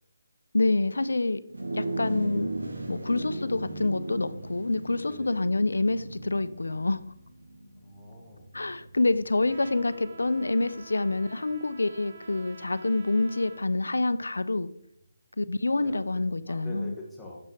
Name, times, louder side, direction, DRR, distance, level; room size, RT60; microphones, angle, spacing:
voice 1, 0.5-1.4 1.7-2.5 2.9-7.0 8.5-14.7 15.4-16.9, left 2 dB, 80° left, 14 dB, 0.4 m, -27 dB
sound 1, 1.5-11.1, right 1 dB, 85° right, 1.2 m, -37 dB
voice 2, 7.8-8.5 15.8-17.4, left 1 dB, 5° left, -6 dB, 1.2 m, -44 dB
Trumpet, 9.5-13.7, right 4 dB, 45° right, 0.5 m, -49 dB
7.0 x 5.4 x 3.2 m, 0.76 s
figure-of-eight pair, 150°, 0 cm